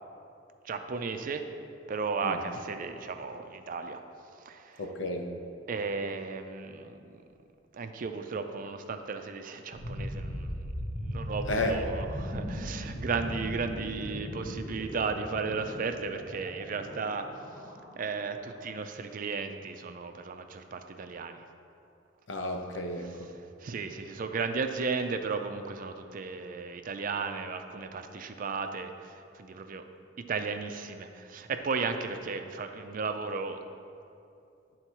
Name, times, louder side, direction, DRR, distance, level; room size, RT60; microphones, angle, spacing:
voice 1, 0.6-1.4 1.9-4.0 4.3-4.8 5.7-7.2 7.7-10.7 11.0-17.3 18.0-21.4 23.6-29.8 30.3-33.6, right 4 dB, 45° right, 7 dB, 0.4 m, -35 dB
voice 2, 4.8-5.3 11.4-11.8 22.3-23.3, left 1 dB, 90° left, 3 dB, 0.7 m, -32 dB
sound 1, 9.7-18.6, equal, 25° left, 1.5 m, -38 dB
9.7 x 3.9 x 4.5 m, 2.6 s
head